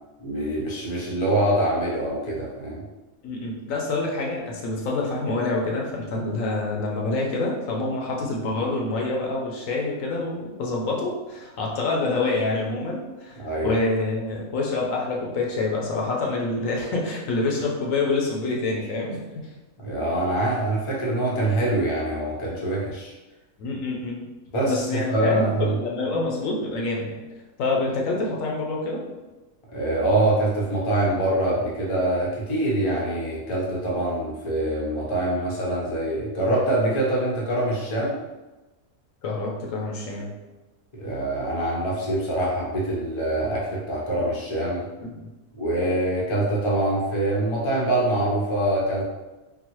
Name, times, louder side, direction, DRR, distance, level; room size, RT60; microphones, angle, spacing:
voice 1, 0.2-2.8 13.4-13.7 19.8-23.1 24.5-25.7 29.7-38.2 41.0-44.9 45.6-49.0, right 1 dB, 30° left, -4 dB, 0.5 m, -24 dB
voice 2, 3.2-19.2 21.3-21.4 23.6-24.2 24.6-27.2 27.6-29.0 39.2-40.3 45.0-45.3, left 3 dB, 70° left, -2 dB, 1.0 m, -27 dB
3.8 x 2.0 x 3.0 m, 1.1 s
omnidirectional pair, 1.5 m